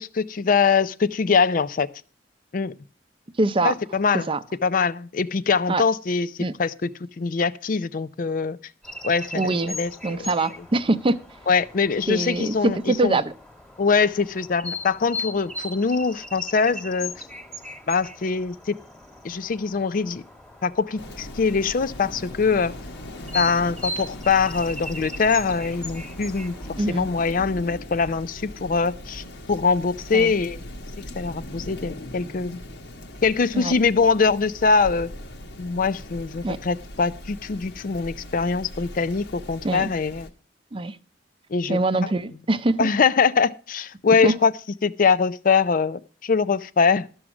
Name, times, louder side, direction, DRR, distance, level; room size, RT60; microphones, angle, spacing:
voice 1, 0.0-1.9 2.5-2.7 3.6-4.3 4.6-6.3 6.6-6.9 7.2-8.6 9.0-10.3 11.5-13.2 13.8-17.1 17.9-18.8 19.2-20.2 20.6-22.7 23.3-26.5 26.9-30.7 31.2-32.6 33.2-35.1 35.6-40.3 41.5-42.1 42.8-44.5 44.8-47.1, left 5 dB, 50° left, 0.5 m, -23 dB
voice 2, 3.4-3.7 4.1-4.4 5.7-5.8 6.4-6.5 9.3-9.8 10.0-11.2 12.1-13.3 26.8-27.1 30.1-30.3 33.5-33.7 36.4-36.6 39.6-39.9 40.7-41.0 41.7-42.9 44.2-44.3, right 2 dB, 30° right, 0.6 m, -23 dB
sound 1, 8.8-27.3, left 2 dB, 5° left, 1.5 m, -38 dB
Rain, 21.0-40.3, left 1 dB, 75° left, 1.3 m, -39 dB
12.5 x 6.3 x 5.9 m
head